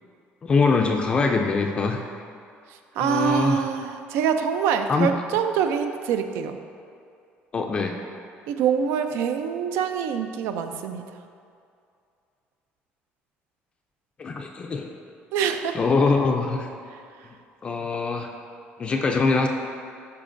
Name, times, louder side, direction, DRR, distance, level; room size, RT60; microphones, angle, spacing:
voice 1, 0.4-2.0 3.0-3.6 4.9-5.1 7.5-8.0 14.2-14.9 15.7-16.7 17.6-18.3 18.8-19.5, left 4 dB, 25° left, 3 dB, 0.3 m, -23 dB
voice 2, 2.7-6.6 8.5-11.0 15.3-15.8 16.9-17.3, right 7 dB, 90° right, 7 dB, 0.5 m, -25 dB
12.0 x 4.7 x 2.5 m, 2.4 s
cardioid pair, 165°, 4 cm